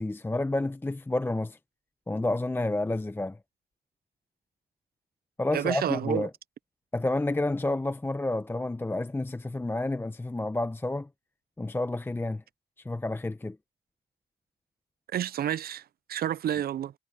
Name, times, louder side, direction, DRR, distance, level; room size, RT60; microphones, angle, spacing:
voice 1, 0.0-1.6 2.1-3.4 5.4-6.3 6.9-11.1 11.6-12.4 12.8-13.6, left 2 dB, 10° left, 0.6 m, -30 dB
voice 2, 5.5-6.3 15.1-16.9, right 10 dB, 50° right, 0.5 m, -30 dB
cardioid pair, 90°, 20 cm